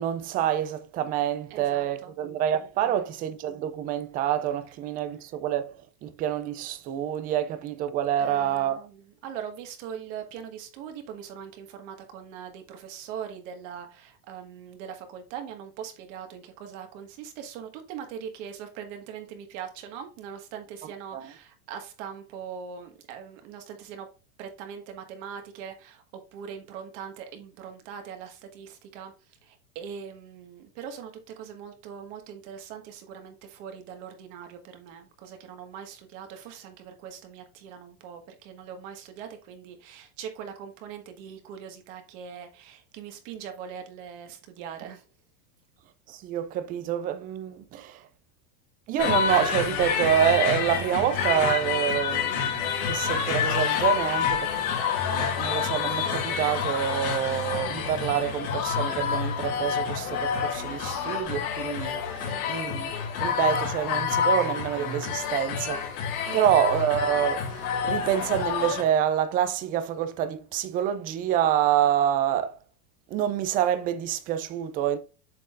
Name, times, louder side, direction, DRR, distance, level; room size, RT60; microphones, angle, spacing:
voice 1, 0.0-5.7 6.0-8.9 21.1-21.3 46.1-48.1 48.9-54.6 55.1-62.9 63.2-65.8 66.1-72.6 73.1-75.0, right 10 dB, 20° right, 0.4 m, -27 dB
voice 2, 1.5-2.1 2.8-3.0 8.2-24.1 24.4-26.0 26.3-29.1 29.4-31.1 31.4-45.0 62.2-62.4 66.3-66.5, right 8 dB, 55° right, 1.7 m, -41 dB
sound 1, 49.0-68.8, left 7 dB, 70° left, 2.5 m, -28 dB
7.6 x 5.4 x 2.5 m
supercardioid pair, 145°, 44 cm